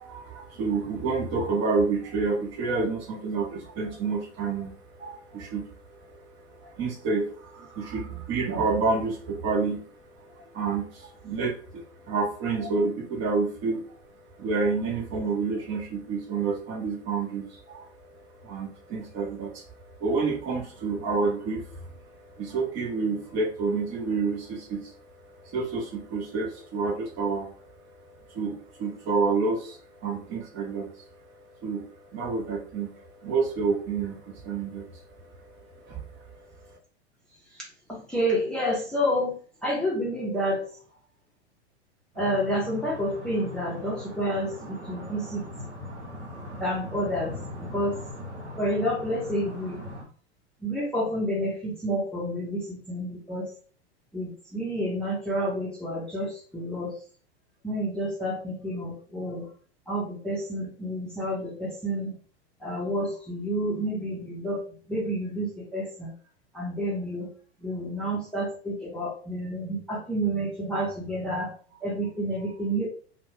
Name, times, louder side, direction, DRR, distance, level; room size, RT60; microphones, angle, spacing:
voice 1, 0.0-36.8, right 4 dB, 35° right, -1 dB, 1.0 m, -30 dB
voice 2, 37.9-39.3 39.6-40.6 42.2-45.4 46.6-47.3 47.6-47.9 48.6-49.8 50.6-53.5 54.1-56.9 57.6-59.5 59.9-62.1 62.6-64.6 64.9-66.1 66.5-67.3 67.6-71.5 71.8-72.9, equal, 5° left, -5 dB, 0.8 m, -29 dB
sound 1, 42.1-50.0, left 1 dB, 90° right, 1.0 m, -40 dB
2.5 x 2.3 x 3.3 m, 0.42 s
figure-of-eight pair, 95°, 33 cm